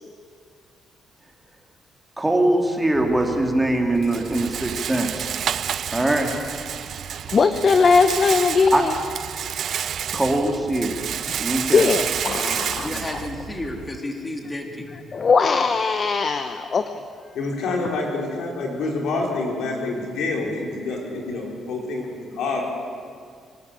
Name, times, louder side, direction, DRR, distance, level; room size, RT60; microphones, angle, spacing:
voice 1, 2.2-5.3 5.9-6.3 8.7-8.8 10.1-11.0 11.4-11.8, right 1 dB, 10° right, 2 dB, 2.9 m, -22 dB
Rattle, 3.0-14.0, right 9 dB, 60° right, 0.5 m, -30 dB
voice 2, 7.0-8.9 11.7-12.9 15.1-17.0, left 4 dB, 40° left, 9 dB, 1.0 m, -20 dB
voice 3, 12.8-14.9, left 1 dB, 20° left, 3 dB, 2.9 m, -31 dB
voice 4, 17.3-22.0 22.4-22.6, left 3 dB, 75° left, 0 dB, 4.7 m, -27 dB
24.0 x 12.5 x 8.6 m, 2.1 s
cardioid pair, 90°, 0 cm